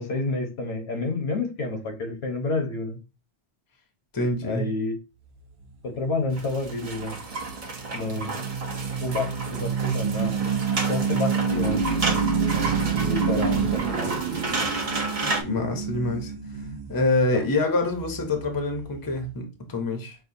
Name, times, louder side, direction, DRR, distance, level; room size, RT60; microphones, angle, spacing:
voice 1, 0.0-3.0 4.4-5.0 5.8-7.2 7.9-8.3 9.0-10.3 10.9-11.8 12.5-12.8 13.0-14.2 17.3-17.4, left 3 dB, 70° left, 1.2 m, -29 dB
voice 2, 4.1-4.6 15.2-16.3 16.9-20.2, left 2 dB, 25° left, 0.7 m, -26 dB
sound 1, 5.2-19.4, right 6 dB, 75° right, 0.9 m, -29 dB
sound 2, 6.3-15.4, right 3 dB, 40° right, 0.7 m, -32 dB
6.0 x 2.2 x 2.6 m
omnidirectional pair, 1.1 m